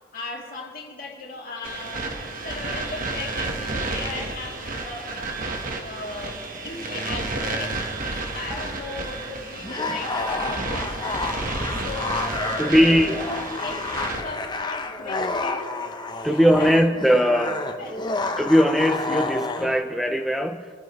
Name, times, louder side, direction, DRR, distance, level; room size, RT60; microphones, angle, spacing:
voice 1, 0.1-5.5 5.8-15.8 16.2-18.3, left 3 dB, 45° left, -3 dB, 2.7 m, -38 dB
sound 1, 1.6-14.2, right 2 dB, 45° right, 1.2 m, -31 dB
sound 2, 9.6-19.8, left 3 dB, 20° left, 0.7 m, -30 dB
voice 2, 12.6-13.3 16.2-17.6 18.4-20.7, equal, ahead, 6 dB, 0.3 m, -20 dB
28.0 x 14.0 x 3.1 m, 2.3 s
head